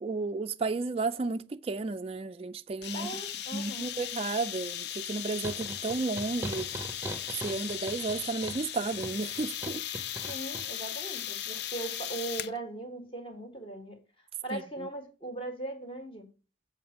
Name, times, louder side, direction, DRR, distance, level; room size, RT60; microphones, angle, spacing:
voice 1, 0.0-3.2 3.5-6.7 7.4-9.8 14.5-14.9, right 3 dB, 30° right, 0.3 m, -33 dB
sound 1, 2.8-12.6, left 10 dB, 60° left, 0.5 m, -37 dB
voice 2, 2.9-3.9 10.3-16.3, right 2 dB, 30° left, 1.8 m, -39 dB
sound 2, 5.4-10.7, right 2 dB, 15° right, 0.7 m, -41 dB
7.8 x 5.3 x 5.8 m
head